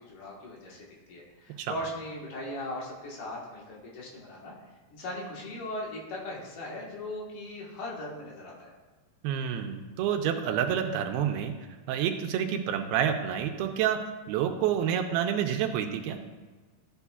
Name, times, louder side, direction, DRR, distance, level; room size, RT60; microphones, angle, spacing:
voice 1, 0.0-4.5 4.9-8.7, left 1 dB, 75° left, -4 dB, 3.4 m, -39 dB
voice 2, 9.2-11.5 11.9-14.0 14.3-16.2, right 9 dB, 85° right, 5 dB, 2.5 m, -28 dB
13.5 x 8.1 x 2.4 m, 1.3 s
omnidirectional pair, 4.5 m